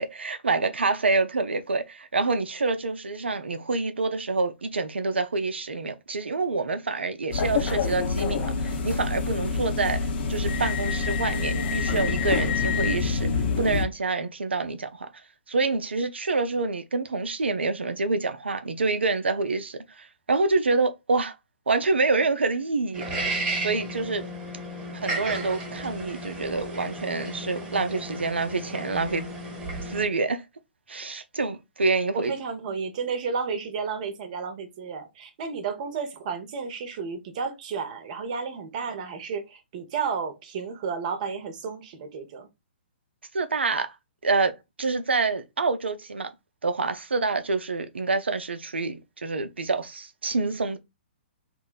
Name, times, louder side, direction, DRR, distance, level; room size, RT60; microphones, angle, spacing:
voice 1, 0.0-13.3 13.6-15.1 15.5-21.4 21.7-23.1 23.6-24.3 24.9-29.3 29.8-30.4 30.9-32.3 43.3-43.9 44.2-44.5 44.8-46.3 46.6-50.8, right 3 dB, 75° right, 0.5 m, -27 dB
sound 1, 7.3-13.8, left 4 dB, 55° left, 0.9 m, -26 dB
sound 2, 22.9-30.1, right 1 dB, 15° right, 1.2 m, -33 dB
voice 2, 32.1-42.5, right 5 dB, 40° right, 0.8 m, -32 dB
2.6 x 2.2 x 3.8 m
figure-of-eight pair, 125°, 6 cm